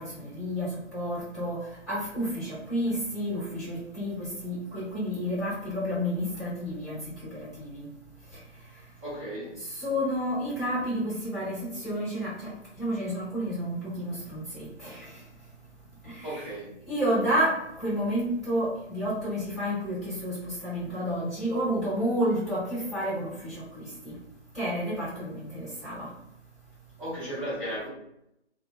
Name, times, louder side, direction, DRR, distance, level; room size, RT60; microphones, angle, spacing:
voice 1, 0.0-7.0 7.3-7.9 9.6-12.5 12.8-15.2 16.0-16.4 16.9-24.1 24.5-26.1, equal, ahead, -12 dB, 1.2 m, -30 dB
voice 2, 9.0-9.6 16.2-16.7 27.0-27.9, right 1 dB, 15° right, -15 dB, 0.8 m, -35 dB
2.5 x 2.3 x 2.3 m, 0.80 s
figure-of-eight pair, 140°, 35 cm